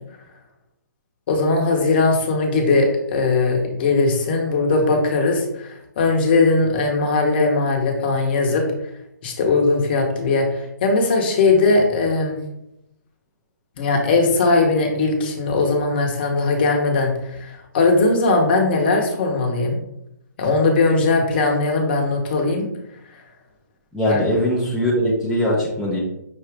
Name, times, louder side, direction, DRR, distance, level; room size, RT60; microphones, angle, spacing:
voice 1, 1.3-8.7 9.2-12.4 13.8-19.8 20.4-22.7 24.1-24.2, left 3 dB, 30° left, 2 dB, 0.8 m, -19 dB
voice 2, 23.9-26.0, equal, ahead, -7 dB, 0.5 m, -20 dB
5.8 x 2.6 x 3.3 m, 0.82 s
hypercardioid pair, 160°, 10 cm